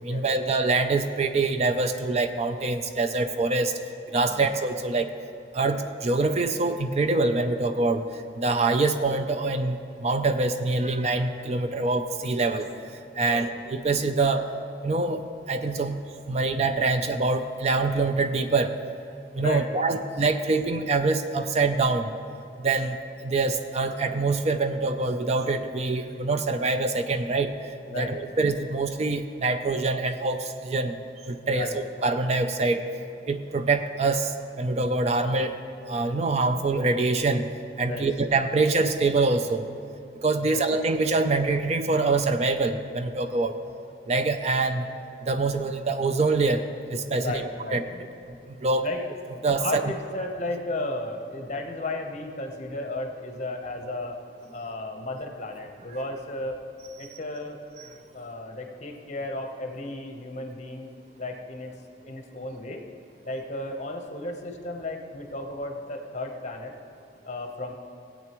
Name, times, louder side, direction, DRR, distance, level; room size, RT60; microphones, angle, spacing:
voice 1, 0.0-3.7 4.1-5.1 5.5-8.0 8.4-12.6 13.2-14.5 14.8-15.2 15.5-16.0 16.3-18.7 19.3-22.1 22.6-27.5 27.9-30.9 31.3-32.8 33.3-34.3 34.6-35.6 35.9-37.5 37.8-39.7 40.2-43.6 44.1-44.9 45.3-46.6 46.9-47.4 47.7-47.8 48.6-48.9 49.4-49.9, right 3 dB, 35° right, 8 dB, 0.4 m, -25 dB
voice 2, 19.4-19.8 27.9-28.3 31.4-31.8 37.8-38.1 40.4-40.6 47.2-48.0 48.8-49.0 49.6-54.2 54.5-56.6 57.0-57.6 58.1-61.7 62.1-62.8 63.2-66.8 67.3-67.8, left 2 dB, 40° left, 4 dB, 0.9 m, -34 dB
17.0 x 8.5 x 3.0 m, 2.6 s
head